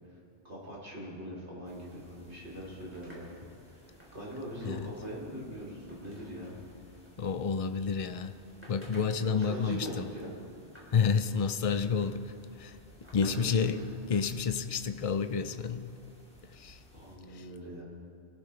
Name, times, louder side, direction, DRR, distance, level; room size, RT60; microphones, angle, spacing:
voice 1, 0.4-3.3 3.7-6.6 9.2-10.3 13.1-13.9 16.9-17.8, equal, 75° right, -5 dB, 3.9 m, -41 dB
sound 1, 1.6-17.2, left 1 dB, 5° left, 1.9 m, -59 dB
sound 2, 2.3-14.3, equal, 10° right, 3.7 m, -57 dB
voice 2, 7.2-8.3 8.7-10.1 10.9-12.3 12.6-12.8 13.1-13.8 14.1-15.9 16.5-16.8 17.3-17.4, left 6 dB, 45° left, 11 dB, 0.4 m, -30 dB
23.5 x 13.5 x 3.3 m, 2.5 s
omnidirectional pair, 1.2 m